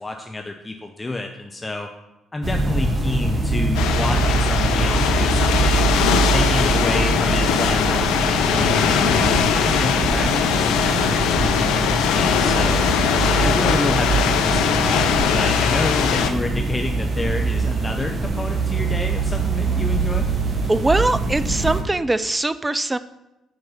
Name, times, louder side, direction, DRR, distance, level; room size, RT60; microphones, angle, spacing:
voice 1, 0.0-1.9 2.3-5.9 6.3-12.8 13.2-20.3, left 2 dB, 20° left, 4 dB, 0.8 m, -29 dB
sound 1, 2.4-21.8, right 3 dB, 40° right, 1.4 m, -23 dB
sound 2, 3.7-16.3, left 8 dB, 70° left, 0.6 m, -21 dB
voice 2, 20.7-23.0, right 2 dB, 20° right, 14 dB, 0.6 m, -21 dB
9.2 x 4.7 x 5.5 m, 0.95 s
hypercardioid pair, 45°, 0 cm